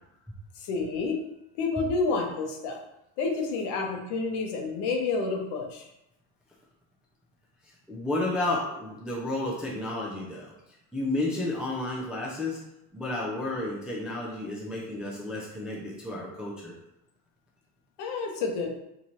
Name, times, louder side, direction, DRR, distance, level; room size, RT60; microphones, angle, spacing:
voice 1, 0.6-1.2 1.6-2.8 3.2-5.9 18.0-18.8, left 4 dB, 60° left, 1 dB, 0.9 m, -29 dB
voice 2, 7.9-10.5 10.9-12.6 12.9-16.8, left 2 dB, ahead, -4 dB, 0.4 m, -31 dB
2.9 x 2.6 x 4.3 m, 0.86 s
supercardioid pair, 125°, 45 cm